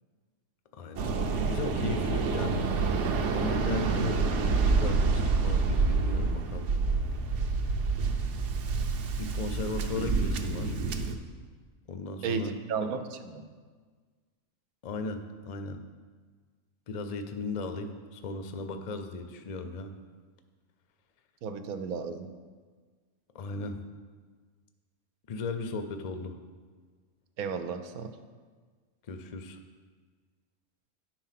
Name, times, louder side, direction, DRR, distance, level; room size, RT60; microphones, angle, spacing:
voice 1, 0.8-2.7 3.3-6.7 9.2-10.8 11.9-12.5 14.8-15.8 16.9-19.9 23.3-23.8 25.3-26.3 29.1-29.6, left 3 dB, 60° left, 7 dB, 0.4 m, -36 dB
Waves surf, 1.0-11.2, right 4 dB, 60° right, 0.9 m, -28 dB
voice 2, 12.2-13.4 21.4-22.3 27.4-28.1, right 5 dB, 85° right, 8 dB, 1.1 m, -33 dB
10.0 x 4.6 x 5.7 m, 1.5 s
omnidirectional pair, 1.5 m